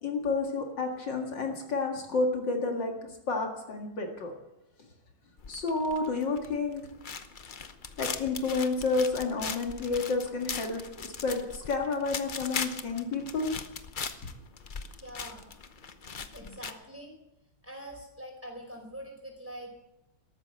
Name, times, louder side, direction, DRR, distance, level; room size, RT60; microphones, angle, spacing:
voice 1, 0.0-2.9 3.3-4.3 5.5-6.8 8.0-13.5, left 3 dB, 70° left, 2 dB, 2.7 m, -30 dB
sound 1, 5.4-16.7, left 5 dB, 45° left, 0.6 m, -40 dB
voice 2, 15.0-15.5 16.3-17.1 17.6-19.8, equal, 5° right, 0 dB, 4.8 m, -44 dB
13.5 x 12.5 x 7.8 m, 0.89 s
omnidirectional pair, 2.1 m